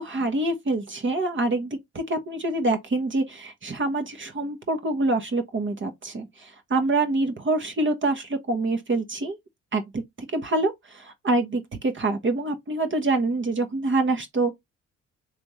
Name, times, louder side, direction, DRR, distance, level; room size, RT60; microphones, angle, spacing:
voice 1, 0.0-9.4 9.7-10.0 10.3-14.5, right 2 dB, 40° right, 1.3 m, -26 dB
3.5 x 3.5 x 3.2 m
hypercardioid pair, 50°, 32 cm